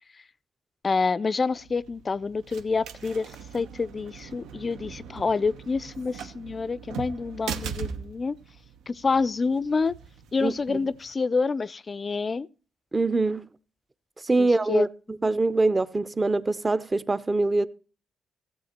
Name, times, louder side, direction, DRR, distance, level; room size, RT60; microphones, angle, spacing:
voice 1, 0.8-8.4 8.9-10.0 10.3-12.5 14.4-14.9, left 4 dB, 35° left, 0.4 m, -27 dB
sound 1, 1.5-11.1, right 7 dB, 85° right, 0.9 m, -41 dB
voice 2, 10.4-10.8 12.9-13.4 14.2-14.9 15.2-17.7, right 2 dB, 20° right, 0.7 m, -24 dB
15.0 x 7.9 x 4.4 m
cardioid pair, 90°, 0 cm